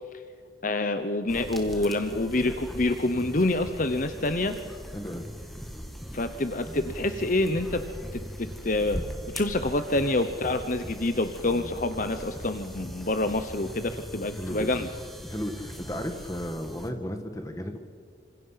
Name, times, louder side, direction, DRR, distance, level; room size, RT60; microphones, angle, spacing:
voice 1, 0.6-4.5 6.1-7.8 8.1-9.0 9.3-14.9, left 2 dB, 45° left, 9 dB, 1.0 m, -27 dB
sound 1, 1.3-16.9, equal, ahead, 2.1 m, -40 dB
voice 2, 4.9-5.3 14.4-14.9 15.3-17.8, equal, 15° left, 6 dB, 1.9 m, -34 dB
27.0 x 26.5 x 5.9 m, 2.1 s
head